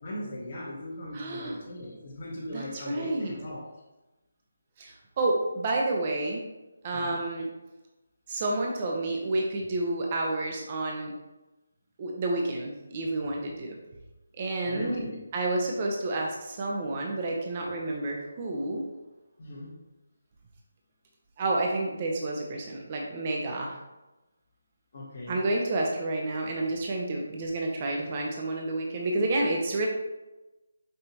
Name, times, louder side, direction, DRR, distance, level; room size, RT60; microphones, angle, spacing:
voice 1, 0.0-3.7 6.9-7.2 14.6-15.2 19.4-19.7 24.9-25.4, left 1 dB, 45° left, -5 dB, 1.0 m, -38 dB
voice 2, 1.1-1.6 2.5-3.3 4.8-6.4 6.8-7.5 8.3-11.1 12.0-13.8 14.4-15.0 15.3-18.8 21.4-23.8 25.3-29.9, right 2 dB, 35° right, 0 dB, 0.5 m, -30 dB
5.4 x 2.8 x 2.8 m, 1.0 s
figure-of-eight pair, 160°, 0 cm